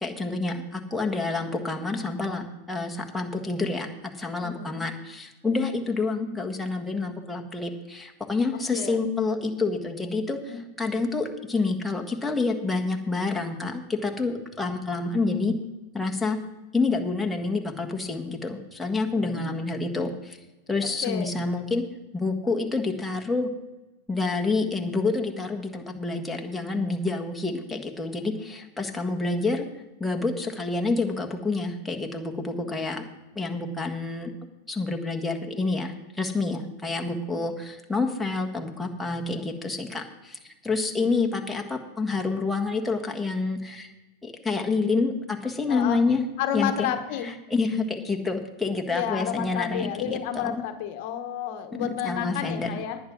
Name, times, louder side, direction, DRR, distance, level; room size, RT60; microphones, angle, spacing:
voice 1, 0.0-3.9 4.2-15.5 15.9-16.4 16.7-20.4 20.7-21.8 22.1-23.5 24.1-29.7 30.0-33.0 33.3-34.3 34.7-43.9 44.2-46.2 46.5-46.9 47.2-50.6 51.8-52.7, left 3 dB, 5° left, 2 dB, 1.6 m, -28 dB
voice 2, 4.4-4.8 8.5-9.0 10.5-10.6 19.3-19.5 20.8-21.3 32.5-32.7 45.7-46.0 46.4-47.3 48.9-53.0, left 9 dB, 60° left, 8 dB, 1.1 m, -31 dB
10.0 x 9.5 x 6.1 m, 1.1 s
hypercardioid pair, 110°, 0 cm